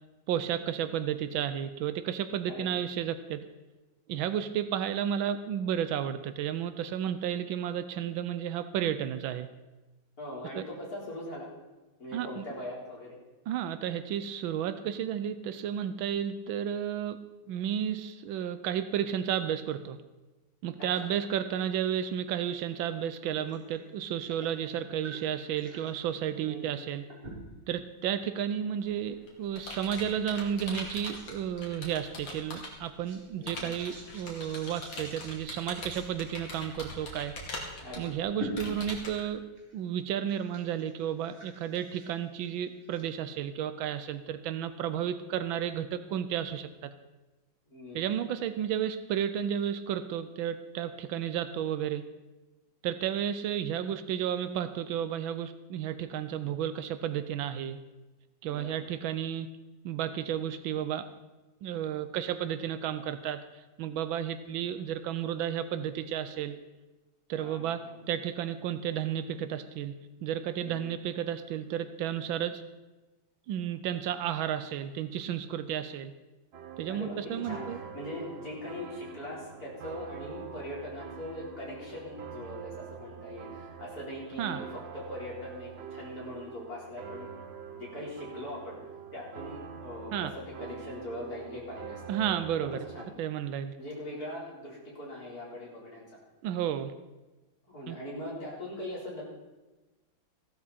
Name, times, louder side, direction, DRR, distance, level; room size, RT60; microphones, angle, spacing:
voice 1, 0.3-3.4 4.1-9.5 10.5-10.6 12.1-12.4 13.5-17.2 17.5-20.0 20.6-27.0 27.7-37.6 38.0-39.4 39.7-46.9 47.9-52.1 52.8-57.8 58.4-59.5 59.8-61.1 61.6-66.6 67.3-69.9 70.2-72.6 73.5-76.1 76.8-77.8 84.4-84.6 90.1-90.3 92.1-92.8 93.2-93.8 96.4-96.9 97.9-98.0, right 9 dB, 85° right, 11 dB, 1.5 m, -32 dB
voice 2, 10.2-11.5 12.0-13.2 20.8-20.9 26.5-26.7 33.4-33.7 37.8-38.1 47.7-48.1 58.5-58.7 67.4-68.0 70.6-70.9 76.9-87.3 87.7-88.8 89.1-92.0 92.7-93.2 93.8-96.0 97.7-99.2, left 1 dB, 50° left, -5 dB, 4.6 m, -41 dB
sound 1, 23.5-23.8 24.1-25.9 27.1-27.7 28.2-28.4 29.2-29.3 29.9-30.4 31.1-31.5 31.9-37.2 37.6-37.7 38.4-39.8 40.1-43.0, equal, 30° right, 2.8 m, -46 dB
Computer keyboard, 28.8-32.9 33.5-39.2, left 2 dB, 75° left, 3.0 m, -42 dB
sound 2, 76.5-93.1, right 7 dB, 60° right, 0.6 m, -45 dB
15.5 x 12.5 x 4.3 m, 1.1 s
omnidirectional pair, 2.1 m